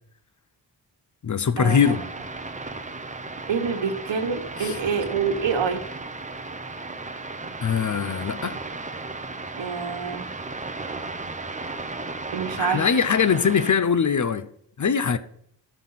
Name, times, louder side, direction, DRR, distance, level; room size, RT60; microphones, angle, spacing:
voice 1, 1.2-2.1 4.6-4.8 7.6-8.6 12.6-14.5 14.8-15.2, left 6 dB, 40° left, 0.6 m, -22 dB
sound 1, 1.7-13.7, right 3 dB, 15° right, 0.8 m, -35 dB
voice 2, 3.5-5.8 9.6-10.2 12.3-12.9, right 6 dB, 75° right, 1.5 m, -26 dB
12.5 x 5.6 x 5.7 m
wide cardioid pair, 100°, 45 cm